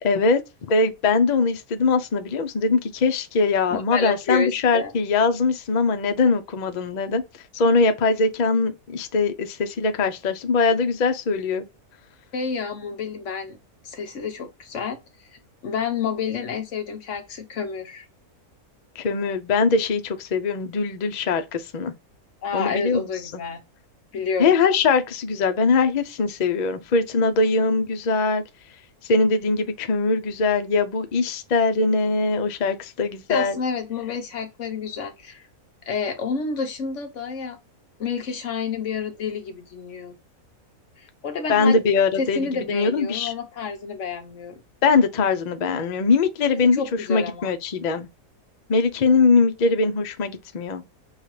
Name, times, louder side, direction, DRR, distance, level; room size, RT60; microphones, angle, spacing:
voice 1, 0.0-0.4 0.7-7.2 7.5-11.6 19.0-21.9 22.5-23.4 24.4-28.4 29.0-33.6 41.5-43.3 44.8-48.1 48.7-50.8, left 4 dB, 85° left, 0.3 m, -21 dB
voice 2, 3.7-4.9 12.3-13.6 13.8-15.0 15.6-18.1 22.4-23.6 24.1-24.5 33.3-35.4 35.9-37.6 38.0-40.1 41.2-41.8 42.2-44.6 46.6-47.5, left 5 dB, 55° left, 1.2 m, -29 dB
6.2 x 2.4 x 3.2 m
omnidirectional pair, 1.6 m